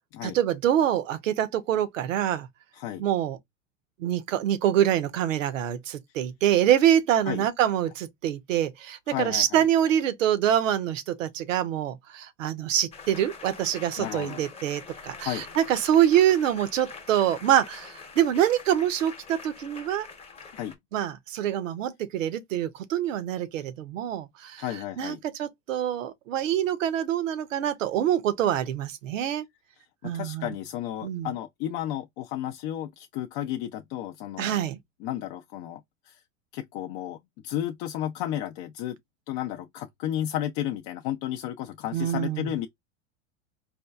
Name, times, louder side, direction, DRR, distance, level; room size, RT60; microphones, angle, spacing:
voice 1, 0.2-2.5 3.0-3.4 4.0-20.1 20.9-24.6 25.0-29.4 30.0-30.5 31.0-31.3 34.4-34.8 41.9-42.5, right 11 dB, 75° right, 0.7 m, -25 dB
voice 2, 2.7-3.0 7.3-7.5 9.1-9.6 14.0-14.4 15.2-15.5 20.5-20.7 24.6-25.2 30.0-34.7 35.0-36.2 36.5-37.2 37.4-39.0 39.3-42.7, left 12 dB, 50° left, 0.5 m, -33 dB
sound 1, 12.9-20.8, left 4 dB, 15° left, 0.8 m, -44 dB
4.3 x 2.3 x 2.3 m
hypercardioid pair, 85°, 38 cm